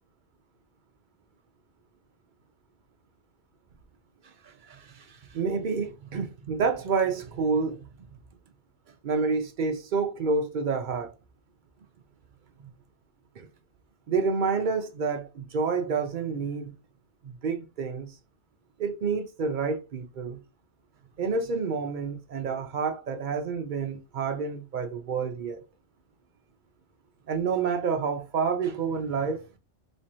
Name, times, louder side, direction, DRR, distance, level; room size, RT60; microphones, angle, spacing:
voice 1, 4.2-7.9 9.0-11.1 12.6-12.7 13.4-13.5 14.1-16.7 17.2-18.2 18.8-20.4 21.2-25.6 27.3-29.5, right 5 dB, 60° right, 0.5 m, -29 dB
3.4 x 3.2 x 2.7 m
omnidirectional pair, 1.3 m